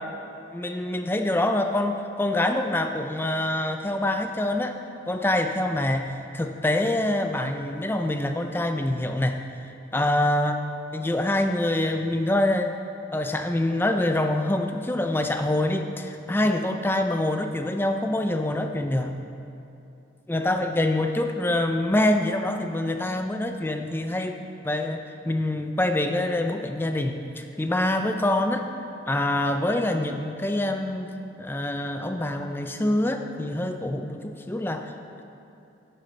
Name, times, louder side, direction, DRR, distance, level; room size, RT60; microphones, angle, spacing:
voice 1, 0.5-4.8 5.1-9.4 9.9-10.6 10.9-12.7 13.1-19.1 20.3-28.7 29.1-31.1 31.4-34.9, left 1 dB, 10° left, 6 dB, 0.4 m, -25 dB
11.5 x 9.9 x 3.2 m, 2.8 s
head